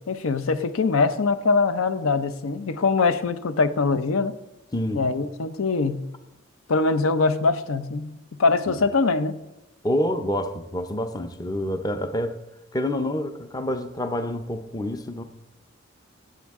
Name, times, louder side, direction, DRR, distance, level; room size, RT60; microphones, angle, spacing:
voice 1, 0.0-4.3 4.9-6.0 6.7-9.4, left 4 dB, 80° left, 12 dB, 0.6 m, -23 dB
voice 2, 4.7-5.0 9.8-12.4 12.7-15.2, left 1 dB, 20° left, 9 dB, 0.6 m, -27 dB
16.5 x 7.5 x 3.6 m, 0.96 s
head